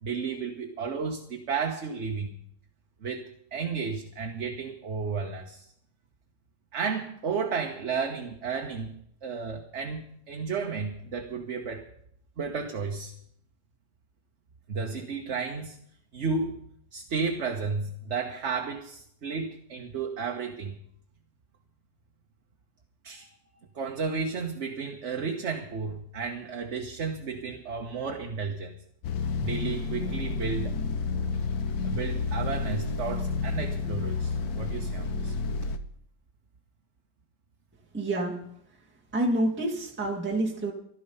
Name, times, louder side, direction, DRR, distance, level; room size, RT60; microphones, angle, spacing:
voice 1, 0.0-2.3 3.0-5.7 6.7-8.9 9.2-11.9 12.4-13.1 14.7-15.8 16.1-16.6 16.9-20.8 23.0-23.3 23.7-28.7 29.4-30.8 31.8-35.4, right 5 dB, 45° right, 3 dB, 1.3 m, -33 dB
sound 1, 29.0-35.8, left 4 dB, 65° left, 1.4 m, -30 dB
voice 2, 37.9-38.4 39.1-40.7, right 1 dB, 5° right, -2 dB, 1.9 m, -28 dB
16.0 x 13.0 x 5.5 m, 0.70 s
omnidirectional pair, 1.8 m